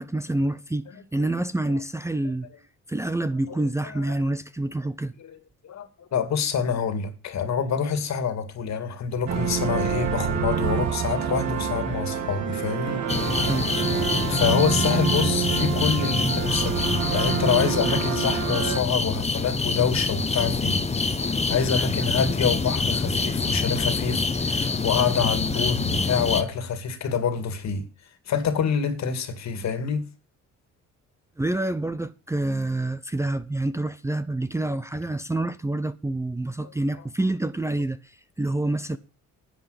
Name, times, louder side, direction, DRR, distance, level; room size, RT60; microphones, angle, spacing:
voice 1, 0.0-2.5 2.9-5.1 13.5-13.7 31.4-39.0, right 2 dB, 10° right, 0.6 m, -27 dB
voice 2, 3.5-4.1 5.2-5.4 5.6-13.0 14.3-20.8 21.2-27.8 28.3-30.1 36.6-36.7 38.9-39.0, left 6 dB, 65° left, 2.3 m, -26 dB
sound 1, 9.3-18.8, right 7 dB, 70° right, 1.8 m, -27 dB
sound 2, 13.1-26.4, left 4 dB, 20° left, 1.0 m, -26 dB
10.5 x 7.7 x 6.6 m
cardioid pair, 90°, 30 cm